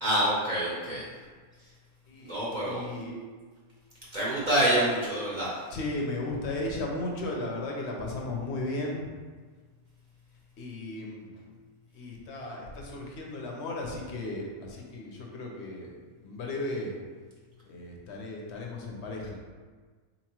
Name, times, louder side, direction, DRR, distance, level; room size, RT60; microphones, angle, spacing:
voice 1, 0.0-1.0 2.2-2.8 4.1-5.6, right 1 dB, 45° right, -7 dB, 0.6 m, -27 dB
voice 2, 2.1-3.1 4.5-4.7 5.7-9.0 10.6-11.2 12.0-14.4 14.9-15.9 16.2-16.9 17.7-19.4, left 2 dB, 60° left, -1 dB, 0.8 m, -35 dB
4.0 x 2.9 x 2.9 m, 1.5 s
omnidirectional pair, 1.5 m